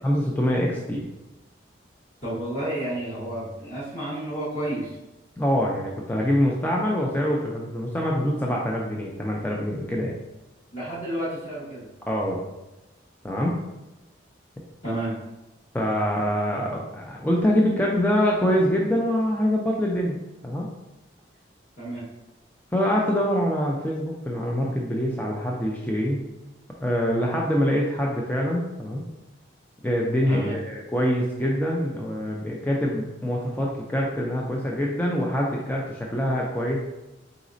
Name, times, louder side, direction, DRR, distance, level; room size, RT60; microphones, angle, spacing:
voice 1, 0.0-1.0 5.4-10.2 12.1-12.4 13.2-13.6 15.7-20.2 20.4-20.7 22.7-26.2 26.8-29.0 29.8-36.8, equal, 10° left, -2 dB, 0.4 m, -25 dB
voice 2, 2.2-4.9 10.7-11.9 14.8-15.1 21.8-22.1 30.3-30.6, right 1 dB, 35° left, -11 dB, 1.3 m, -31 dB
4.0 x 4.0 x 2.5 m, 1.0 s
head